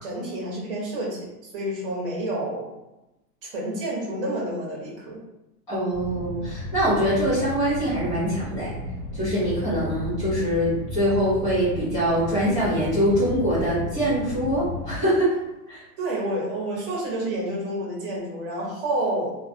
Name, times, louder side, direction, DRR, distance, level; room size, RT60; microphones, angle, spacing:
voice 1, 0.0-2.7 3.4-5.2 16.0-19.4, right 1 dB, 35° right, -4 dB, 0.9 m, -29 dB
voice 2, 5.7-8.7 9.1-15.3 15.7-15.8, equal, 5° left, -14 dB, 0.6 m, -23 dB
sound 1, 5.9-15.0, left 2 dB, 75° left, 1.0 m, -34 dB
3.0 x 2.3 x 2.5 m, 0.98 s
supercardioid pair, 175°, 46 cm